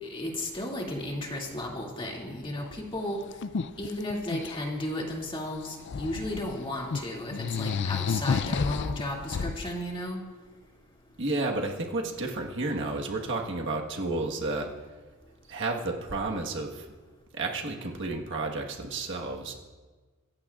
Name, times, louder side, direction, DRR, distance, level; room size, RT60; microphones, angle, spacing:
voice 1, 0.0-3.2 3.8-10.2, left 1 dB, 25° left, -2 dB, 2.4 m, -34 dB
sound 1, 2.6-2.7 3.0-4.6 5.5-6.6 6.9-7.0 7.3-9.7, left 5 dB, 50° left, 0.4 m, -31 dB
voice 2, 11.2-14.7 15.5-16.9 17.3-19.6, right 2 dB, 55° right, 0 dB, 1.4 m, -31 dB
25.5 x 15.0 x 2.5 m, 1.4 s
head